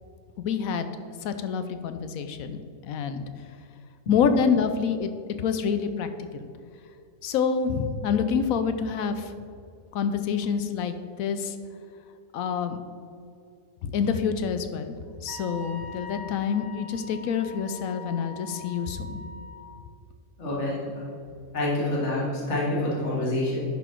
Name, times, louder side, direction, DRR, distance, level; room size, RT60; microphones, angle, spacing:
voice 1, 0.4-0.9 1.2-3.2 4.1-5.1 5.4-6.5 7.2-9.3 9.9-11.6 12.3-12.8 13.8-19.2, left 6 dB, 75° left, 9 dB, 1.0 m, -27 dB
Wind instrument woodwind instrument, 15.3-19.7, left 3 dB, 40° right, 0.7 m, -42 dB
voice 2, 20.4-21.1 21.5-23.6, left 1 dB, 50° left, -6 dB, 2.0 m, -27 dB
11.0 x 4.1 x 4.5 m, 2.4 s
omnidirectional pair, 1.5 m